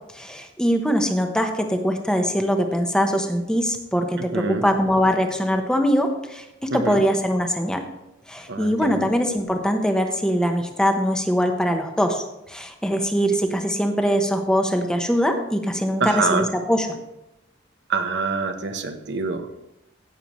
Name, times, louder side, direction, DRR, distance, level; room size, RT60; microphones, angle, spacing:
voice 1, 0.1-7.8 8.3-16.9, equal, 5° left, 4 dB, 0.9 m, -22 dB
voice 2, 4.3-4.6 6.7-7.0 8.5-9.0 16.0-16.5 17.9-19.6, right 4 dB, 60° right, 6 dB, 1.0 m, -25 dB
16.5 x 6.9 x 3.1 m, 0.90 s
head